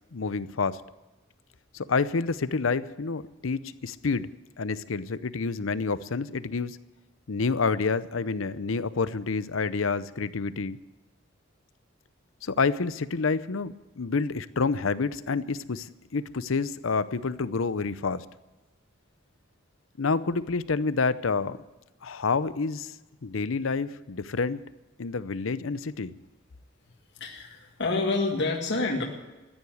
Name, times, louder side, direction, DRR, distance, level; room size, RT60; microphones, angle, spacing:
voice 1, 0.1-0.8 1.7-4.3 4.6-6.8 7.3-10.8 12.4-18.2 20.0-21.6 22.0-22.9 23.2-24.6 25.0-26.1, left 4 dB, 80° left, 15 dB, 0.7 m, -28 dB
voice 2, 27.2-29.1, left 3 dB, 60° left, 0 dB, 2.0 m, -28 dB
14.5 x 10.0 x 9.5 m, 1.1 s
head